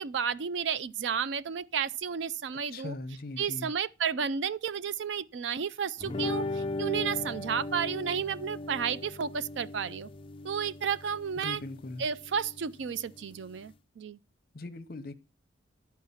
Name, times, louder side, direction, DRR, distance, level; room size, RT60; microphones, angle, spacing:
voice 1, 0.0-2.9 3.4-10.1 10.4-11.6 12.0-14.2, right 7 dB, 75° right, 0.4 m, -32 dB
voice 2, 2.7-3.7 11.4-12.0 14.5-15.1, left 2 dB, 50° left, 0.8 m, -40 dB
sound 1, 6.0-13.7, left 2 dB, 30° left, 0.4 m, -38 dB
12.0 x 4.7 x 5.6 m
head